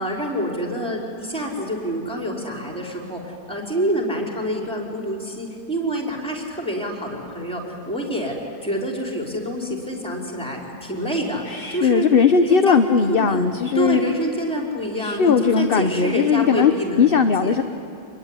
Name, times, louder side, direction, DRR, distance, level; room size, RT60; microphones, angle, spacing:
voice 1, 0.0-8.4 8.6-11.4 11.7-12.1 12.4-12.8 13.1-17.6, equal, 5° left, 0 dB, 4.8 m, -27 dB
voice 2, 11.5-14.0 15.0-16.7 17.0-17.6, left 6 dB, 45° left, 8 dB, 0.9 m, -18 dB
27.0 x 21.5 x 9.9 m, 2.7 s
omnidirectional pair, 1.7 m